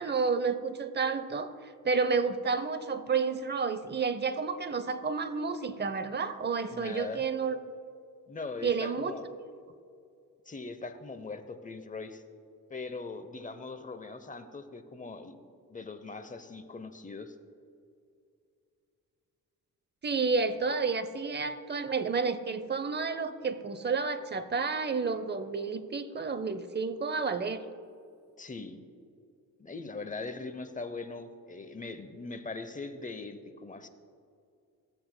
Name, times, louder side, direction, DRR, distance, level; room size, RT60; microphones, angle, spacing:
voice 1, 0.0-7.6 8.6-9.1 20.0-27.6, right 5 dB, 30° right, 12 dB, 0.6 m, -30 dB
voice 2, 6.7-7.3 8.3-9.3 10.5-12.2 12.7-15.4 15.7-17.3 28.4-28.8 29.6-33.9, left 3 dB, 20° left, 9 dB, 0.8 m, -41 dB
15.0 x 7.7 x 2.2 m, 2.4 s
cardioid pair, 65°, 36 cm